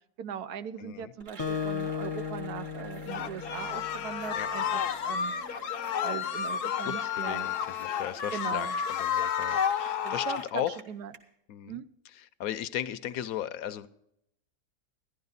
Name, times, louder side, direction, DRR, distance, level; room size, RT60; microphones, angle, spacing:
voice 1, 0.2-5.3 6.0-7.5 8.3-8.8 10.0-10.6 10.9-11.1 11.7-11.9, right 8 dB, 80° right, 11 dB, 1.2 m, -39 dB
voice 2, 0.8-1.1 4.3-4.5 6.8-10.8 11.5-11.8 12.1-13.9, left 11 dB, 70° left, 14 dB, 1.0 m, -36 dB
Cheering / Applause, 1.2-11.2, right 3 dB, 55° right, 1.9 m, -49 dB
Acoustic guitar, 1.4-4.2, left 6 dB, 25° left, 0.8 m, -35 dB
sound 1, 3.1-10.5, left 8 dB, 90° left, 1.2 m, -31 dB
13.5 x 11.5 x 4.0 m, 0.75 s
omnidirectional pair, 1.6 m